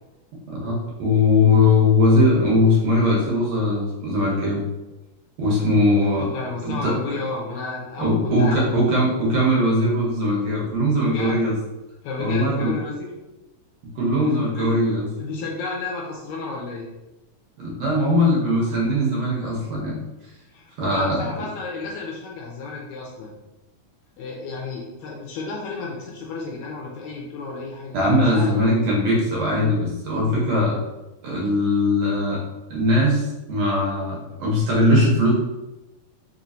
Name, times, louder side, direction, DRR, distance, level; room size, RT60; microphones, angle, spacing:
voice 1, 0.5-4.6 5.4-6.3 6.7-6.9 8.0-11.5 12.2-12.7 14.0-15.1 17.6-20.0 20.8-21.2 27.9-30.8 31.2-32.4 32.7-35.3, left 1 dB, 65° right, -4 dB, 1.9 m, -20 dB
voice 2, 5.9-8.8 11.0-11.4 12.0-13.1 14.3-14.8 15.2-16.9 20.5-23.4 24.2-28.6, left 3 dB, 80° left, -2 dB, 1.8 m, -32 dB
4.8 x 3.0 x 2.6 m, 0.99 s
omnidirectional pair, 3.7 m